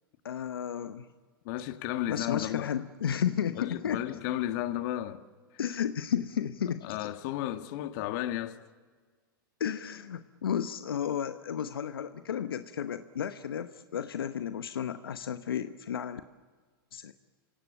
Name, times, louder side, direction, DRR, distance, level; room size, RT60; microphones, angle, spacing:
voice 1, 0.2-1.1 2.1-4.1 5.6-7.1 9.6-16.2 16.9-17.1, left 8 dB, 85° left, 1.0 m, -33 dB
voice 2, 1.4-2.7 3.5-5.2 6.8-8.6, left 13 dB, 55° left, 1.7 m, -33 dB
28.5 x 17.0 x 9.0 m
hypercardioid pair, 105°, 12 cm